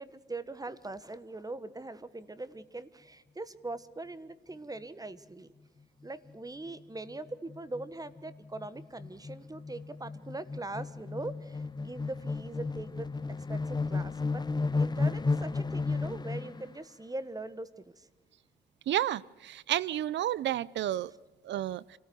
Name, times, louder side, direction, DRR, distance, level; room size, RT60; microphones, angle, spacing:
voice 1, 0.0-5.5 6.0-14.4 14.8-18.1 21.1-21.2, right 2 dB, 20° right, 1.2 m, -41 dB
sound 1, 6.0-6.3 6.7-6.8 7.1-16.7, left 3 dB, 25° left, 0.7 m, -34 dB
voice 2, 18.9-19.2 19.7-21.1 21.5-21.8, right 12 dB, 90° right, 0.6 m, -30 dB
26.0 x 14.0 x 7.9 m
cardioid pair, 85°, 18 cm